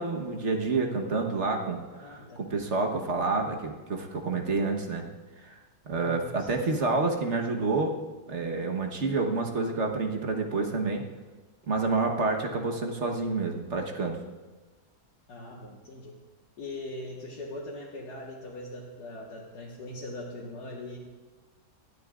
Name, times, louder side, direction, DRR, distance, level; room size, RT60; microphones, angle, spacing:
voice 1, 0.0-5.1 5.5-5.6 5.9-7.9 8.3-11.1 11.7-14.2, right 3 dB, 45° right, 2 dB, 1.3 m, -28 dB
voice 2, 1.9-2.4 3.4-3.6 5.9-6.6 15.3-16.2 16.6-21.0, left 1 dB, 65° left, -5 dB, 2.0 m, -41 dB
19.5 x 13.0 x 2.4 m, 1.3 s
omnidirectional pair, 1.9 m